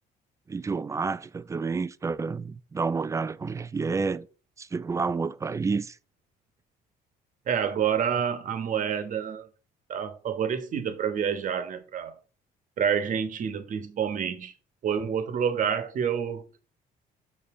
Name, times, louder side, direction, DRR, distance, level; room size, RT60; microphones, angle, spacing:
voice 1, 0.5-4.3 4.6-6.0, right 4 dB, 20° right, 0.4 m, -29 dB
voice 2, 7.5-9.5 9.9-12.2 12.8-14.5 14.8-16.6, right 7 dB, 50° right, 1.2 m, -28 dB
6.9 x 6.9 x 3.7 m
cardioid pair, 110°, 17 cm